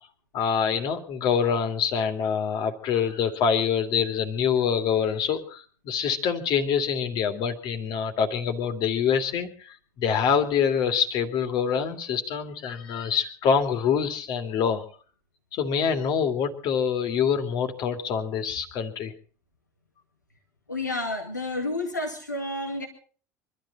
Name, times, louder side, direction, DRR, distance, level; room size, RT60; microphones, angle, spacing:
voice 1, 0.3-14.8 15.5-19.1, left 7 dB, 50° left, 6 dB, 2.6 m, -25 dB
voice 2, 20.7-22.9, left 2 dB, 90° left, 2 dB, 2.2 m, -30 dB
24.5 x 13.5 x 4.2 m, 0.42 s
figure-of-eight pair, 70°, 9 cm